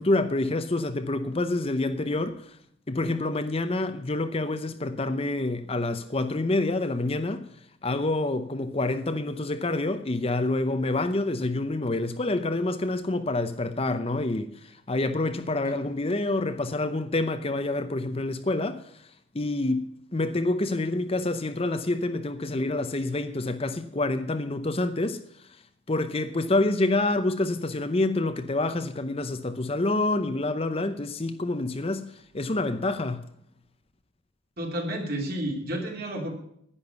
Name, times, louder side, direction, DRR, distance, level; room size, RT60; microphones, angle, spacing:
voice 1, 0.0-2.6 2.9-7.5 7.8-19.1 19.3-25.6 25.9-33.3, left 2 dB, 30° left, 0.7 m, -27 dB
voice 2, 34.6-36.3, right 1 dB, 45° right, 2.8 m, -31 dB
11.0 x 9.9 x 6.9 m
head